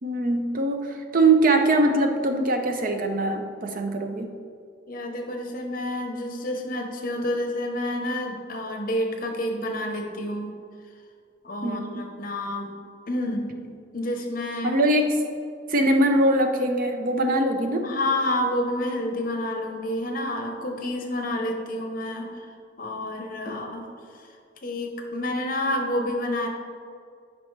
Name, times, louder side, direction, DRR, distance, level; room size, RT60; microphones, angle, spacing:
voice 1, 0.0-4.3 11.6-12.1 14.6-15.2 15.7-17.9 23.5-23.6, right 2 dB, 45° right, 5 dB, 0.6 m, -22 dB
voice 2, 4.9-10.5 11.4-12.7 13.1-14.8 17.8-22.5 22.8-23.9 24.2-24.3 24.6-26.5, left 1 dB, 45° left, 3 dB, 0.9 m, -29 dB
9.0 x 5.3 x 3.2 m, 2.2 s
head